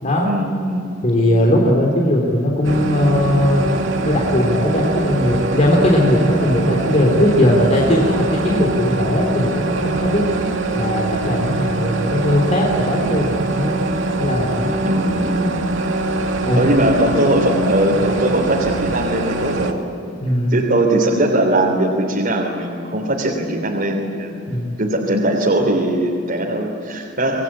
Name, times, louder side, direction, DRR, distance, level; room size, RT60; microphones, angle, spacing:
voice 1, 0.2-1.0 14.8-15.8 16.6-20.1 20.5-24.4 24.8-27.4, right 1 dB, 50° right, -2 dB, 3.4 m, -20 dB
voice 2, 1.0-3.7 4.0-10.3 10.7-13.7 14.1-14.7 16.4-16.6 20.2-20.6 24.5-24.8, left 1 dB, 40° left, -2 dB, 3.4 m, -18 dB
sound 1, 2.6-19.7, right 2 dB, 80° right, 2.4 m, -23 dB
27.0 x 21.0 x 8.7 m, 2.8 s
head